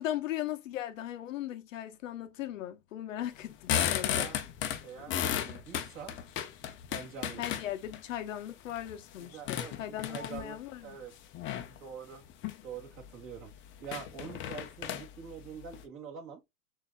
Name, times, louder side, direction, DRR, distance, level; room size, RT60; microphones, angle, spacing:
voice 1, 0.0-4.3 7.4-11.0, left 12 dB, 80° left, 1.0 m, -38 dB
sound 1, 3.4-8.0 8.5-10.6 11.3-11.8 12.2-12.6 13.0-13.1 13.3-13.4 13.8-15.8, left 10 dB, 30° left, 0.7 m, -34 dB
voice 2, 4.0-4.4 4.8-6.2 6.9-7.7 9.2-11.1 11.7-12.2 12.6-16.4, right 7 dB, 35° right, 2.4 m, -45 dB
6.6 x 2.9 x 2.2 m
supercardioid pair, 135°, 38 cm